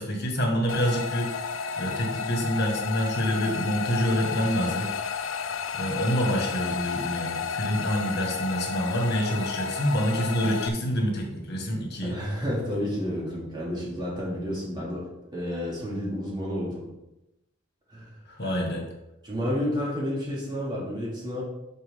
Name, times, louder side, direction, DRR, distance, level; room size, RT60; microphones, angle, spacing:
voice 1, 0.0-1.5 1.8-4.9 5.7-12.2 18.3-18.8, equal, 55° left, 2 dB, 1.8 m, -27 dB
sound 1, 0.7-10.7, left 6 dB, 75° left, 0.5 m, -32 dB
voice 2, 12.0-16.9 17.9-18.6 19.2-21.4, equal, 20° right, -6 dB, 2.7 m, -31 dB
11.0 x 4.5 x 3.7 m, 0.92 s
head